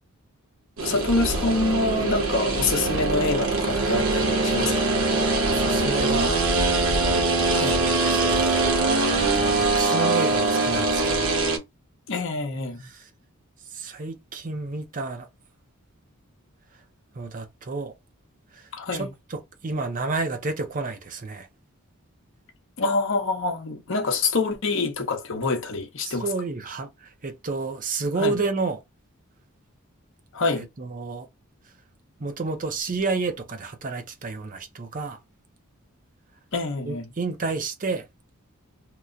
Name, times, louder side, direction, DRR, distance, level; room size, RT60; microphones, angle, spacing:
voice 1, 0.8-4.8 7.5-7.8 12.1-12.9 18.7-19.1 22.8-26.2 28.2-28.4 30.3-30.6 36.5-37.1, left 3 dB, 60° left, 0.9 m, -26 dB
sound 1, 0.8-11.6, right 3 dB, 75° right, 1.0 m, -23 dB
voice 2, 5.5-6.4 7.6-8.6 9.3-11.4 12.8-13.1 13.7-15.3 17.2-17.9 18.5-18.6 18.9-21.5 26.0-28.8 30.6-31.3 32.2-35.2 36.8-38.1, right 3 dB, 40° right, 0.6 m, -30 dB
3.0 x 2.1 x 3.7 m
head